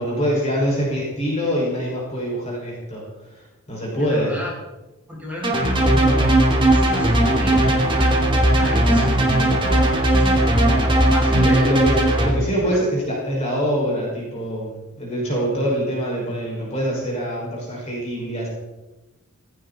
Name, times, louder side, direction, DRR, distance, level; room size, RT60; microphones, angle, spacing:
voice 1, 0.0-3.0 3.3-4.3 11.3-18.5, equal, 30° left, -4 dB, 6.3 m, -24 dB
voice 2, 3.9-4.5 5.1-6.4 6.7-11.7 12.6-12.8, left 1 dB, 5° right, -6 dB, 7.9 m, -32 dB
sound 1, 5.4-12.3, right 1 dB, 25° right, 2.7 m, -17 dB
18.0 x 17.0 x 4.4 m, 1.1 s
head